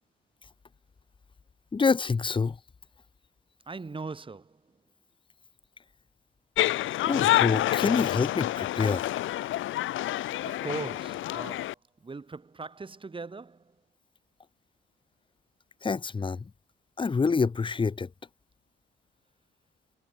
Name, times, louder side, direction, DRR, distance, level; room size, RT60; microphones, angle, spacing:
voice 1, 1.7-2.6 7.0-9.1 10.3-10.6 15.8-16.5 17.0-18.1, left 4 dB, 25° left, 0.9 m, -27 dB
voice 2, 3.7-4.6 10.5-13.7, right 4 dB, 25° right, 3.3 m, -40 dB
sound 1, 6.6-11.7, left 14 dB, 80° left, 1.3 m, -28 dB
cardioid pair, 90°, 20 cm